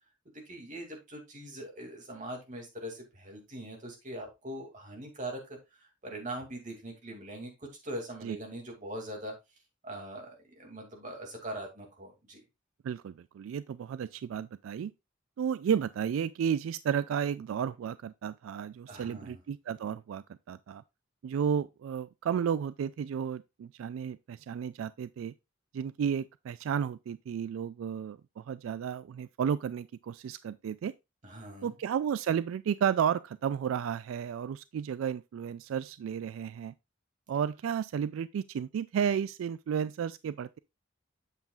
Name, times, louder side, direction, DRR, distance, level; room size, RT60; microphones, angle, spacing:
voice 1, 0.5-5.6 6.0-9.3 9.8-12.4 18.9-19.4 31.2-31.7, right 1 dB, 40° right, 2.5 m, -42 dB
voice 2, 12.8-14.9 15.4-20.8 21.2-25.3 25.7-30.9 31.6-36.7 37.3-40.6, right 8 dB, 90° right, 0.3 m, -32 dB
8.2 x 7.1 x 2.4 m
head